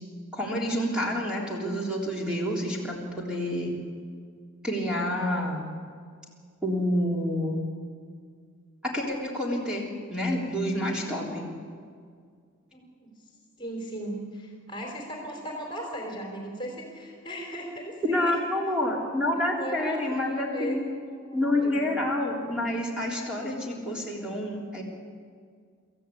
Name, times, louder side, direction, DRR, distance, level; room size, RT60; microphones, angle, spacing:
voice 1, 0.3-3.7 4.6-5.7 6.6-7.6 8.8-9.8 10.1-11.5 18.0-20.8 21.3-24.8, left 1 dB, 5° right, -4 dB, 3.5 m, -28 dB
voice 2, 12.7-13.3 13.6-18.4 19.3-21.9, equal, 20° left, 0 dB, 3.3 m, -38 dB
26.5 x 14.5 x 8.5 m, 2.1 s
head